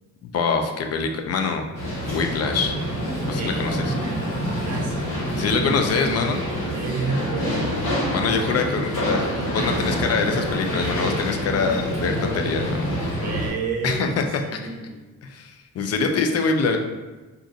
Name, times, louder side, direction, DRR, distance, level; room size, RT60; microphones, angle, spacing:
voice 1, 0.2-1.6 2.1-2.8 3.3-3.9 5.3-6.4 8.1-12.9 13.8-14.2 14.5-14.6 15.2-16.8, left 4 dB, 55° left, 4 dB, 0.5 m, -24 dB
sound 1, 1.7-13.5, equal, 85° left, 1.1 m, -26 dB
voice 2, 3.4-6.4 6.7-8.0 13.2-15.0, right 4 dB, 60° right, 1 dB, 0.6 m, -32 dB
2.5 x 2.5 x 3.9 m, 1.2 s
cardioid pair, 90°, 30 cm